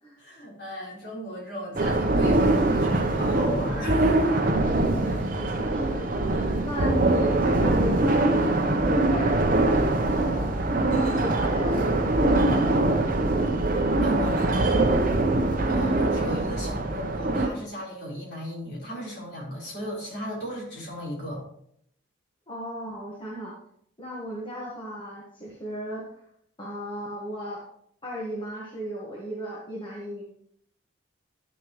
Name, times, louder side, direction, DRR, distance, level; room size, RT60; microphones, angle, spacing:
voice 1, 0.2-4.4 6.3-6.7 13.5-14.9 15.6-21.4, equal, 55° left, -5 dB, 4.0 m, -36 dB
sound 1, 1.8-17.5, right 2 dB, 40° right, 0.8 m, -23 dB
voice 2, 4.9-6.0 6.6-10.5 10.9-12.8 22.5-23.6 24.0-26.2 26.6-27.6 28.0-30.2, equal, 25° left, -5 dB, 1.4 m, -35 dB
11.5 x 6.8 x 3.1 m, 0.69 s
head